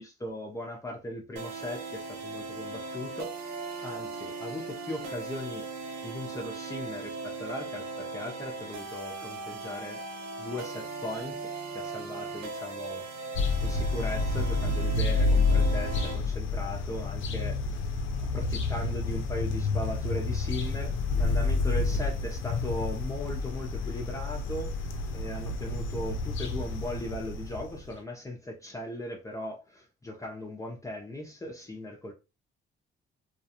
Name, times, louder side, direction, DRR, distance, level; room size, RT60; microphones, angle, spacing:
voice 1, 0.0-3.3 3.8-5.6 6.0-10.0 10.4-32.1, left 1 dB, 15° left, 0.6 m, -38 dB
sound 1, 1.4-16.2, right 3 dB, 90° right, 0.6 m, -38 dB
sound 2, 13.3-27.9, left 3 dB, 75° left, 0.6 m, -29 dB
2.4 x 2.3 x 2.8 m
cardioid pair, 90°, 20 cm